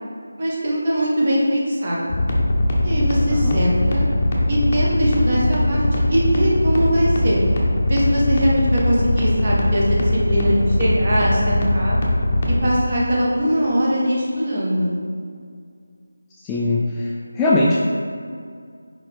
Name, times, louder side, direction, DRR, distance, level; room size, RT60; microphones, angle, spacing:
voice 1, 0.4-2.2 2.8-4.1 4.5-5.8 6.1-7.4 7.9-11.9 12.5-15.0, equal, 35° right, -5 dB, 1.3 m, -21 dB
sound 1, 2.1-12.7, left 1 dB, 30° left, 0.8 m, -20 dB
voice 2, 16.4-17.1 17.4-17.8, left 2 dB, 10° left, -6 dB, 0.3 m, -20 dB
4.8 x 4.7 x 4.3 m, 2.2 s
figure-of-eight pair, 160°, 0 cm